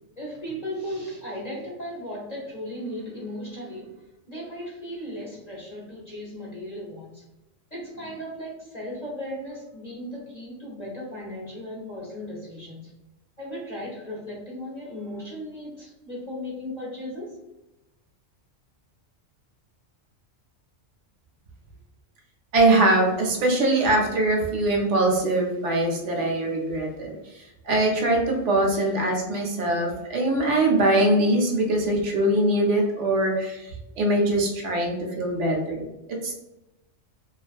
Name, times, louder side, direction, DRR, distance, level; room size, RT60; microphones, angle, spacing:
voice 1, 0.2-7.2 7.7-12.9 13.4-17.3 28.7-28.9, equal, 45° left, -5 dB, 0.6 m, -36 dB
voice 2, 22.5-36.3, right 1 dB, 75° right, 0 dB, 0.9 m, -22 dB
2.3 x 2.2 x 2.4 m, 0.96 s
omnidirectional pair, 1.3 m